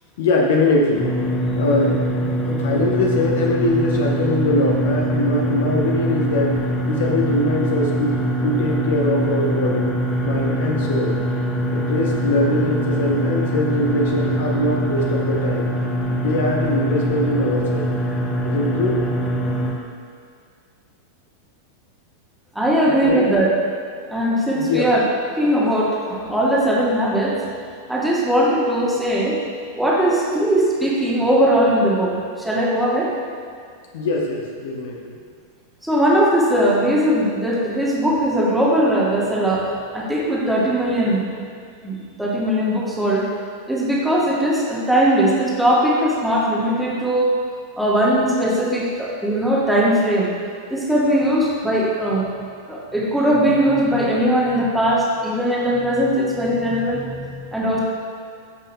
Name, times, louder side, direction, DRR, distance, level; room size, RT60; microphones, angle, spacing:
voice 1, 0.2-1.1 1.5-6.6 6.9-8.2 8.4-9.9 10.2-11.2 11.7-15.7 16.2-17.9 18.4-19.1 22.8-23.3 24.5-24.9 33.9-35.2, left 2 dB, 55° left, 0 dB, 0.8 m, -22 dB
sound 1, 0.9-19.7, right 1 dB, 15° left, 1.0 m, -23 dB
voice 2, 22.5-23.5 24.1-25.0 25.3-27.4 27.9-29.4 29.7-33.1 35.8-41.3 41.8-43.3 43.7-47.3 47.8-50.3 50.7-52.3 52.7-57.8, right 1 dB, ahead, -5 dB, 1.4 m, -19 dB
13.0 x 5.4 x 2.2 m, 2.2 s
figure-of-eight pair, 90°, 0 cm